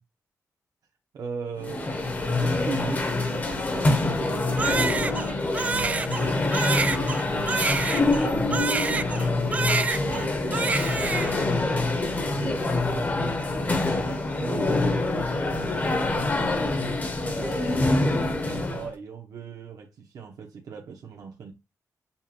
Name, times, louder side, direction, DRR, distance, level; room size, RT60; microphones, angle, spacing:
voice 1, 1.1-3.1 3.4-5.2 5.7-9.6 10.0-13.4 13.9-21.5, right 6 dB, 75° right, 1.1 m, -39 dB
sound 1, 1.6-18.9, left 2 dB, 25° left, 0.8 m, -25 dB
Crying sobbing, 4.6-9.3 9.5-10.3 10.5-11.5, right 4 dB, 20° right, 0.3 m, -27 dB
7.1 x 2.5 x 2.8 m
wide cardioid pair, 180°, 6 cm